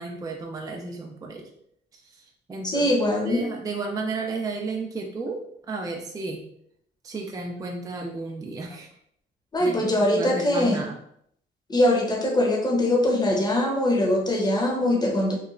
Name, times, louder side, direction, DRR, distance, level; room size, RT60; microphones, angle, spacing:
voice 1, 0.0-1.5 2.5-5.4 5.7-6.4 7.0-8.9 9.6-11.0, right 3 dB, 20° right, 1 dB, 0.4 m, -33 dB
voice 2, 2.6-3.5 9.5-10.8 11.7-15.4, left 1 dB, 20° left, 0 dB, 0.8 m, -22 dB
2.9 x 2.1 x 2.4 m, 0.70 s
cardioid pair, 90°, 20 cm